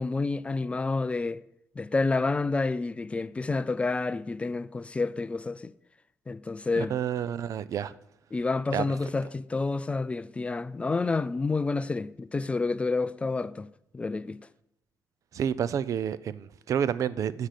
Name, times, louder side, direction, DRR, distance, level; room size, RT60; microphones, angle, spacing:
voice 1, 0.0-1.4 1.8-5.7 6.3-6.9 8.3-13.7 13.9-14.4, left 3 dB, 20° left, 0.3 m, -29 dB
voice 2, 6.8-7.9 8.7-8.8 15.3-17.5, right 8 dB, 60° right, 0.5 m, -29 dB
11.5 x 6.5 x 7.5 m
cardioid pair, 135°, 6 cm